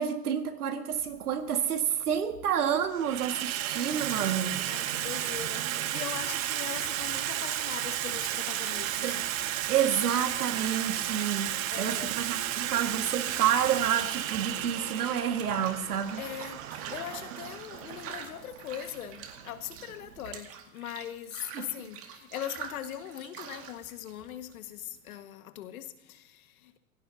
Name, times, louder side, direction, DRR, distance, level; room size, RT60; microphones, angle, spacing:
voice 1, 0.0-4.6 9.0-9.2 9.7-16.2 21.5-21.7, right 8 dB, 85° right, 2.1 m, -29 dB
Water tap faucet / Sink (filling or washing), 1.0-1.1 2.1-2.5 2.8-20.4, right 12 dB, 60° right, 1.4 m, -34 dB
voice 2, 4.7-9.2 11.7-12.1 16.2-26.7, left 11 dB, 70° left, 1.9 m, -40 dB
sound 1, 10.4-25.2, right 7 dB, 30° right, 2.2 m, -47 dB
26.5 x 18.0 x 2.9 m
hypercardioid pair, 125°, 44 cm